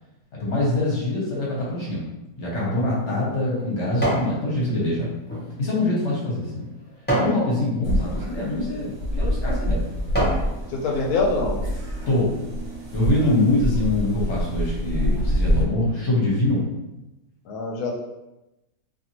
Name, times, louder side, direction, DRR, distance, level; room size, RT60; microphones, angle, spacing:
voice 1, 0.4-2.0 2.4-5.1 5.6-6.7 7.1-9.8 12.1-12.3 12.9-16.7, left 2 dB, 55° left, -5 dB, 1.0 m, -24 dB
sound 1, 2.5-4.3 4.8-7.4 8.0-8.3 8.9-9.1 9.6-10.5 11.0-11.1, right 1 dB, 10° left, 0.5 m, -28 dB
sound 2, 7.8-15.6, equal, 65° right, 1.0 m, -26 dB
voice 2, 10.7-11.6 13.2-13.4 17.5-18.0, left 3 dB, 75° left, 0 dB, 1.1 m, -25 dB
2.7 x 2.6 x 2.9 m, 0.98 s
omnidirectional pair, 1.7 m